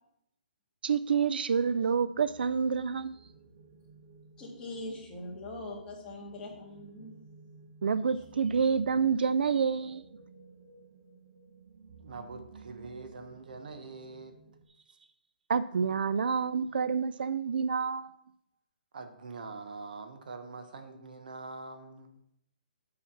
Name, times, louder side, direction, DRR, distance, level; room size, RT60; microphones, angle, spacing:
voice 1, 0.8-3.2 7.8-10.0 15.5-18.1, right 6 dB, 80° right, 14 dB, 0.4 m, -28 dB
sound 1, 1.9-14.7, right 4 dB, 45° right, 1.1 m, -54 dB
voice 2, 4.4-7.2, left 2 dB, 15° left, -3 dB, 1.8 m, -42 dB
voice 3, 12.0-14.4 18.9-22.2, right 3 dB, 65° right, 7 dB, 1.1 m, -44 dB
7.0 x 4.7 x 5.8 m, 0.76 s
hypercardioid pair, 160°, 5 cm